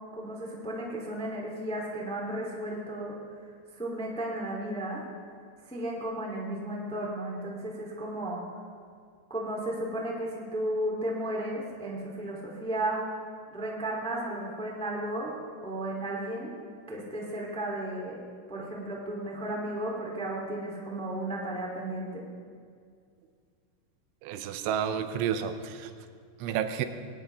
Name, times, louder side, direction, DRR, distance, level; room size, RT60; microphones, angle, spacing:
voice 1, 0.1-3.2 3.7-5.0 5.6-8.5 9.3-13.0 13.5-15.3 15.6-16.5 16.9-18.2 18.5-22.3, right 1 dB, ahead, -3 dB, 1.6 m, -34 dB
voice 2, 24.2-25.9 26.4-26.9, right 8 dB, 85° right, 9 dB, 3.3 m, -30 dB
22.5 x 18.0 x 3.5 m, 2.2 s
omnidirectional pair, 5.4 m